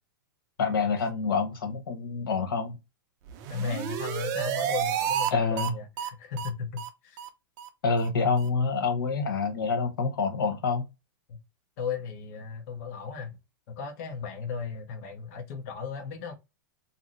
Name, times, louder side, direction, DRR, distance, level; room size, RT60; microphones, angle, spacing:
voice 1, 0.6-2.8 5.3-5.7 7.8-10.8, left 4 dB, 90° left, 1.1 m, -27 dB
sound 1, 3.3-5.3 5.6-5.7 6.0-6.1 6.4-6.5 6.8-6.9 7.2-7.3 7.6-7.7 8.0-8.1 8.4-8.5, right 10 dB, 30° right, 0.5 m, -30 dB
voice 2, 3.5-7.2 11.3-11.4 11.8-13.4 13.7-16.3, left 6 dB, 45° left, 0.8 m, -35 dB
2.7 x 2.0 x 3.7 m
hypercardioid pair, 150°, 11 cm